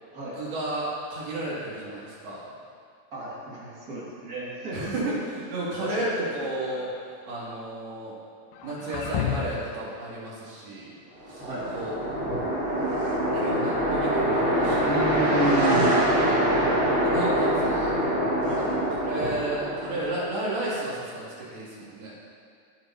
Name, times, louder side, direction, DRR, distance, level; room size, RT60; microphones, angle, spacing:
voice 1, 0.3-2.5 4.7-6.9 7.3-8.1 8.6-11.0 11.3-11.5 11.7-12.4 13.3-15.4 17.0-18.0 18.6-22.1, right 1 dB, 90° right, -8 dB, 4.6 m, -33 dB
voice 2, 3.1-4.9 5.8-6.1 11.4-11.7 14.8-16.1 18.4-18.6, right 1 dB, 40° right, -6 dB, 1.3 m, -31 dB
sound 1, 6.3-7.1 8.5-9.8, left 9 dB, 85° left, 2.5 m, -33 dB
sound 2, 11.2-20.3, right 1 dB, 60° right, 0.5 m, -24 dB
16.5 x 7.3 x 2.8 m, 2.2 s
omnidirectional pair, 4.3 m